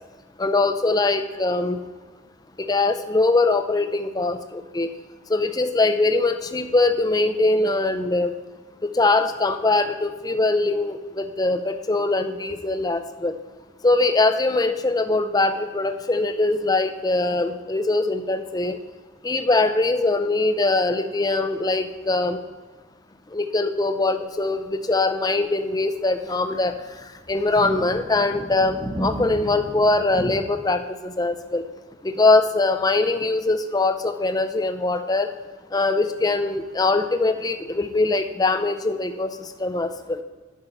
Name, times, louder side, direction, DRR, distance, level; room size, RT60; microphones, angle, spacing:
voice 1, 0.4-1.8 2.6-4.9 5.3-8.3 8.9-13.3 13.8-18.8 19.2-22.4 23.3-26.7 27.3-31.6 32.0-35.3 35.7-40.2, left 2 dB, 20° left, 8 dB, 0.5 m, -22 dB
sound 1, 26.6-26.8 27.5-30.3, right 1 dB, 20° right, 1.1 m, -32 dB
12.0 x 5.6 x 4.3 m, 1.4 s
head